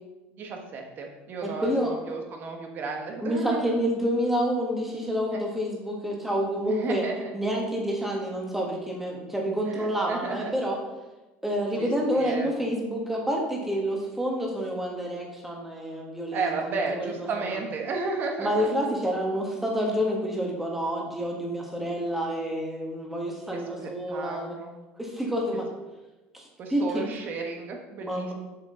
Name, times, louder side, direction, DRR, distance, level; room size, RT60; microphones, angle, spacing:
voice 1, 0.3-1.7 2.1-3.8 5.3-5.4 6.7-7.3 9.7-10.5 11.8-11.9 12.1-12.5 16.3-18.7 23.5-24.8 26.6-28.3, right 4 dB, 40° right, 3 dB, 1.2 m, -33 dB
voice 2, 1.4-1.9 3.2-7.0 7.3-10.8 11.4-17.5 18.4-24.5 25.0-25.7 26.3-26.4 26.7-27.1 28.0-28.3, equal, 5° right, -1 dB, 1.6 m, -28 dB
7.4 x 6.3 x 3.8 m, 1.1 s
cardioid pair, 140°, 5 cm